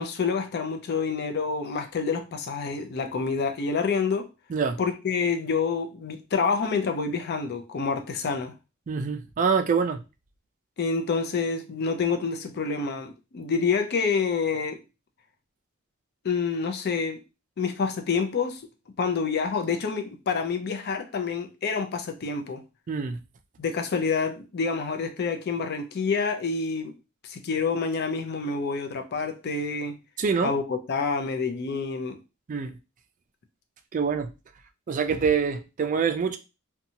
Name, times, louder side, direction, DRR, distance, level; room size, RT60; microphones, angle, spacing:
voice 1, 0.0-4.3 4.8-8.5 10.8-14.8 16.2-17.2 17.6-18.6 19.0-22.6 23.6-27.0 27.2-30.0 30.4-32.2, left 5 dB, 50° left, 0.4 m, -27 dB
voice 2, 8.9-10.0 22.9-23.2 30.2-30.5 32.5-32.7 33.9-34.3 34.9-36.4, right 6 dB, 40° right, 0.3 m, -25 dB
2.7 x 2.2 x 2.7 m
head